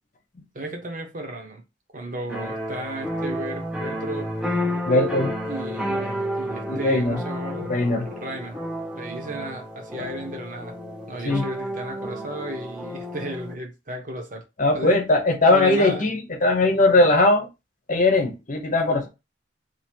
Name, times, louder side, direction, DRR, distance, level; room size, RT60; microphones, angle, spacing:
voice 1, 0.5-1.6 1.9-4.3 4.6-5.1 5.5-8.6 8.9-10.8 11.1-14.4 14.7-15.0 15.5-16.1, right 1 dB, 45° right, 1.0 m, -34 dB
sound 1, 2.3-13.5, equal, 5° right, 0.7 m, -31 dB
voice 2, 4.9-5.3 6.7-7.2 7.7-8.1 10.0-10.1 11.2-11.4 14.6-17.5 17.9-19.1, left 2 dB, 45° left, 0.9 m, -20 dB
3.0 x 2.8 x 4.4 m
head